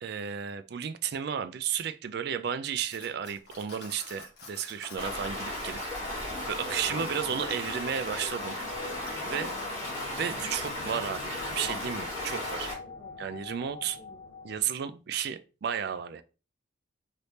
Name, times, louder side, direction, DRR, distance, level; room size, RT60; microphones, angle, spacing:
voice 1, 0.0-6.1 6.5-8.9 9.2-9.5 10.2-12.7 13.2-14.0 14.4-16.2, right 8 dB, 50° right, 0.3 m, -33 dB
Cutlery silverware, 2.9-5.1, left 3 dB, 55° left, 1.1 m, -48 dB
Stream, 5.0-12.7, left 1 dB, 20° left, 1.6 m, -35 dB
voice 2, 6.6-7.1 9.2-9.9 12.8-13.2 14.0-14.2, equal, 35° left, 0.7 m, -47 dB
sound 1, 6.7-14.6, left 3 dB, 85° left, 0.5 m, -45 dB
3.3 x 3.1 x 2.7 m
head